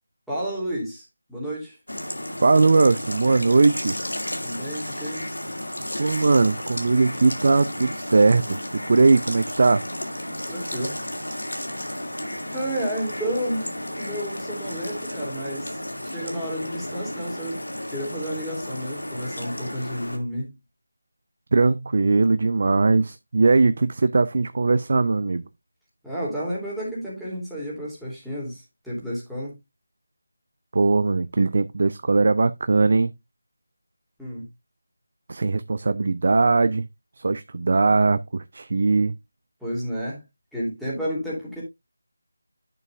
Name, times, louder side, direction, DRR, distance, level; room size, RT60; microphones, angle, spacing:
voice 1, 0.3-1.8 4.4-5.3 10.5-11.0 12.5-17.6 17.9-20.5 26.0-29.5 34.2-34.5 39.6-40.2 40.5-41.6, equal, ahead, 2.9 m, -31 dB
sound 1, 1.9-20.2, left 1 dB, 90° left, 2.3 m, -33 dB
voice 2, 2.4-4.0 6.0-9.8 21.5-25.4 30.7-33.1 35.3-36.9 37.2-39.1, right 3 dB, 45° right, 0.4 m, -20 dB
10.5 x 6.9 x 2.4 m
figure-of-eight pair, 165°, 0 cm